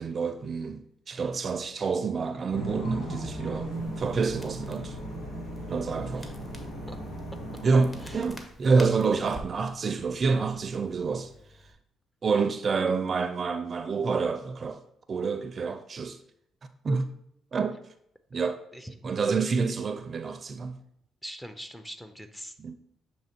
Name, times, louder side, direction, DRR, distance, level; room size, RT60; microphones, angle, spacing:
voice 1, 0.0-5.0 5.7-6.3 7.6-11.3 12.2-14.8 15.1-16.2 16.8-17.1 17.5-17.8 18.3-18.6 19.0-20.8 22.6-22.8, right 4 dB, 45° right, 0.5 m, -28 dB
sound 1, 2.5-8.3, right 1 dB, 90° left, 2.3 m, -37 dB
Crackle, 3.7-11.7, equal, 25° left, 1.1 m, -49 dB
voice 2, 21.2-22.5, equal, 5° left, 0.6 m, -42 dB
7.1 x 3.0 x 4.4 m
cardioid pair, 90°, 0 cm